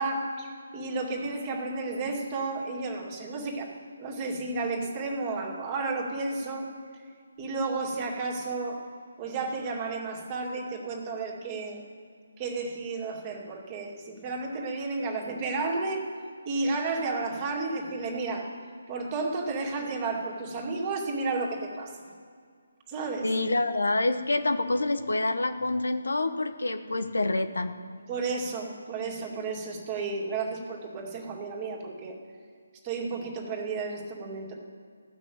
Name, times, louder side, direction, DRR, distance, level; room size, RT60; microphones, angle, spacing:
voice 1, 0.0-3.7 4.0-6.7 7.4-8.8 9.2-11.8 12.4-16.1 16.5-18.5 18.9-22.1 22.9-23.3 28.1-32.2 32.8-34.6, right 3 dB, 25° right, 0 dB, 2.3 m, -32 dB
voice 2, 23.2-27.7, left 2 dB, 80° left, 8 dB, 1.1 m, -27 dB
15.5 x 6.3 x 9.2 m, 2.1 s
figure-of-eight pair, 150°, 0 cm